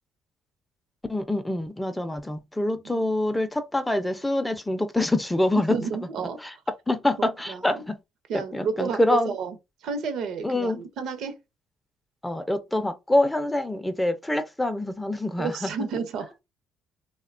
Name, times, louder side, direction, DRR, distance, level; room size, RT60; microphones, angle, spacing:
voice 1, 1.1-5.8 6.4-6.5 6.9-8.0 8.3-9.3 10.4-10.8 12.2-15.7, left 1 dB, 10° left, 0.3 m, -25 dB
voice 2, 5.5-6.4 7.5-7.8 8.3-9.0 9.3-9.6 9.8-11.4 15.4-16.3, right 5 dB, 70° right, 0.6 m, -31 dB
2.7 x 2.1 x 2.4 m
cardioid pair, 105°, 0 cm